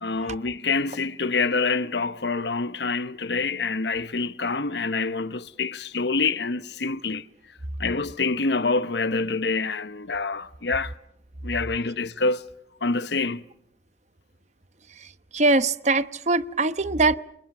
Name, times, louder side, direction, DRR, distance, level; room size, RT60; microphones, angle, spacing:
voice 1, 0.0-7.2 7.8-10.9 11.4-12.4 12.8-13.4, left 3 dB, 75° left, 1.0 m, -26 dB
voice 2, 15.0-17.2, right 3 dB, 40° right, 1.0 m, -22 dB
29.5 x 28.5 x 6.1 m
head